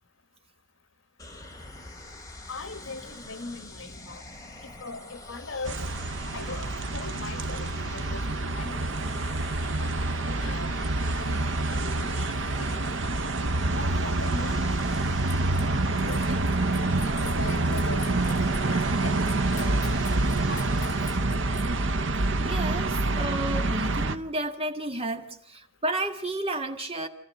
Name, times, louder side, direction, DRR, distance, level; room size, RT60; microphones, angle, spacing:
sound 1, 1.2-21.2, left 2 dB, 20° left, 2.7 m, -45 dB
voice 1, 2.5-4.2 4.6-5.8 6.3-9.1 9.8-10.7 11.1-11.5 11.7-12.8 13.6-15.0 15.9-19.2 19.5-21.0, left 3 dB, 75° left, 1.7 m, -41 dB
sound 2, 5.6-24.2, right 2 dB, 65° right, 1.0 m, -27 dB
sound 3, 14.8-15.7 16.0-21.7, left 6 dB, 45° left, 4.3 m, -45 dB
voice 2, 22.4-27.1, right 1 dB, 30° right, 1.7 m, -32 dB
28.0 x 14.0 x 7.7 m
head